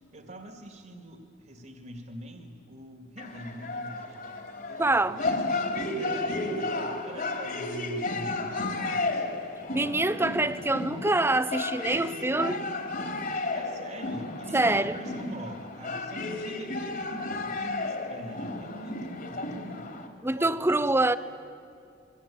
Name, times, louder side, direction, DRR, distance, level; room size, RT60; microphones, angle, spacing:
voice 1, 0.1-4.2 4.7-9.3 13.5-19.9 20.3-21.2, right 1 dB, 45° right, 5 dB, 2.5 m, -44 dB
sound 1, 3.2-20.1, left 2 dB, 50° left, 3.2 m, -33 dB
voice 2, 4.8-5.2 9.7-12.6 14.5-15.0 20.2-21.2, right 2 dB, 15° right, 14 dB, 0.8 m, -25 dB
sound 2, 9.6-14.3, left 1 dB, 85° left, 3.3 m, -52 dB
28.5 x 22.5 x 8.8 m, 2.5 s
head